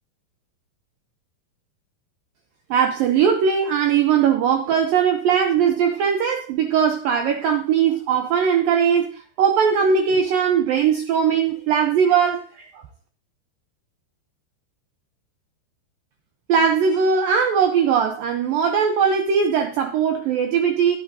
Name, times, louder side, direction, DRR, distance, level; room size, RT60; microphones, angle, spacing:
voice 1, 2.7-12.8 16.5-21.0, right 7 dB, 80° right, 2.1 m, -20 dB
11.0 x 10.5 x 2.7 m
omnidirectional pair, 5.0 m